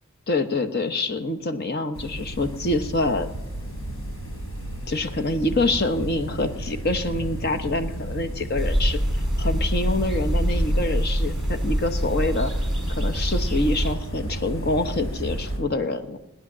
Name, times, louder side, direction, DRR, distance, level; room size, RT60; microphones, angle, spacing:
voice 1, 0.3-3.3 4.9-9.0 9.4-12.5 12.9-16.2, left 2 dB, 50° left, 8 dB, 1.1 m, -26 dB
sound 1, 1.9-15.6, right 1 dB, 70° left, 5.4 m, -33 dB
sound 2, 8.6-13.9, equal, ahead, 2.1 m, -25 dB
18.0 x 10.0 x 7.4 m, 0.93 s
head